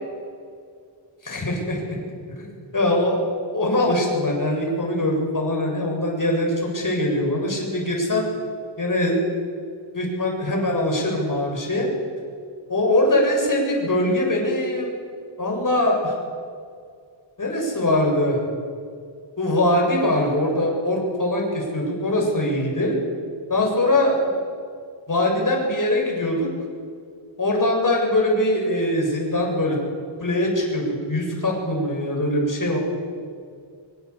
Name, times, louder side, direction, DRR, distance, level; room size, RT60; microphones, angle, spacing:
voice 1, 1.2-2.0 2.3-3.2 3.5-8.3 8.8-9.2 9.9-11.9 12.7-14.9 15.4-16.1 17.4-18.4 19.4-23.0 23.5-24.3 25.1-26.5 27.4-29.8 30.2-32.8, left 1 dB, 40° left, 0 dB, 7.4 m, -22 dB
24.5 x 24.5 x 8.6 m, 2.2 s
wide cardioid pair, 140°, 47 cm